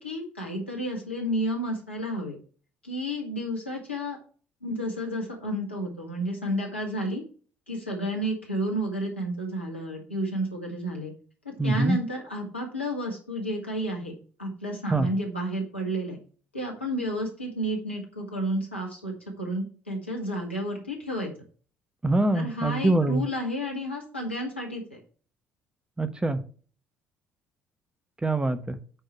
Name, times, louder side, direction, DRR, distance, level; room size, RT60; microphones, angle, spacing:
voice 1, 0.0-2.4 2.8-4.2 4.6-7.2 7.7-11.1 11.5-14.1 14.4-16.2 16.5-21.3 22.3-25.0, equal, 90° left, 0 dB, 1.8 m, -31 dB
voice 2, 11.6-12.0 14.9-15.1 22.0-23.3 26.0-26.4 28.2-28.8, right 2 dB, 15° right, 10 dB, 1.1 m, -24 dB
9.1 x 4.8 x 4.6 m, 0.40 s
figure-of-eight pair, 55°, 6 cm